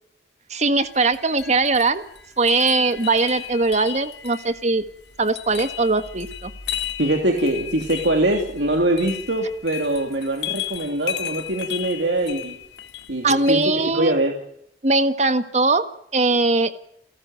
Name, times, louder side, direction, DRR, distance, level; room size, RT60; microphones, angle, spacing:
voice 1, 0.5-2.0 2.4-4.8 5.2-6.5 13.2-14.2 14.8-15.8 16.1-16.7, right 3 dB, 40° right, 10 dB, 1.6 m, -20 dB
sound 1, 0.8-13.9, left 11 dB, 70° left, 2.0 m, -35 dB
voice 2, 7.0-12.6 13.1-14.4, right 1 dB, 75° right, 2 dB, 2.9 m, -23 dB
30.0 x 13.5 x 7.8 m, 0.72 s
head